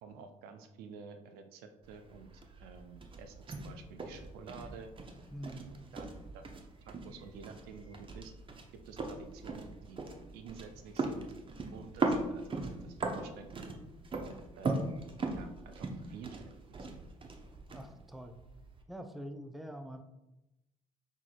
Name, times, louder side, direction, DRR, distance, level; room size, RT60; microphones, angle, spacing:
voice 1, 0.0-4.9 5.6-6.1 6.3-8.3 8.8-10.0 10.3-11.3 11.7-13.7 14.2-14.9 15.3-16.4 16.8-16.9, right 5 dB, 65° right, 8 dB, 0.5 m, -50 dB
sound 1, 1.8-18.8, right 3 dB, 30° right, 0.7 m, -40 dB
voice 2, 5.3-5.8 17.7-18.4 18.9-20.0, equal, ahead, 7 dB, 0.4 m, -45 dB
5.9 x 3.0 x 2.4 m, 0.95 s
hypercardioid pair, 50°, 17 cm